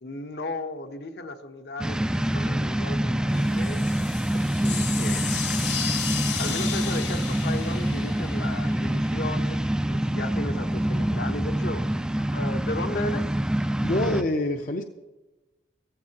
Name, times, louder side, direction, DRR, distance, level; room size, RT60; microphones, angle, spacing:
voice 1, 0.0-4.1 4.3-5.4 6.4-12.0 12.3-13.3, left 2 dB, 65° left, 6 dB, 1.0 m, -35 dB
sound 1, 1.8-14.2, right 1 dB, 5° right, 0.3 m, -26 dB
sound 2, 3.3-9.2, left 8 dB, 90° left, 1.6 m, -34 dB
voice 2, 13.8-14.8, left 1 dB, 45° left, 4 dB, 0.6 m, -26 dB
16.0 x 14.5 x 2.9 m, 1.1 s
head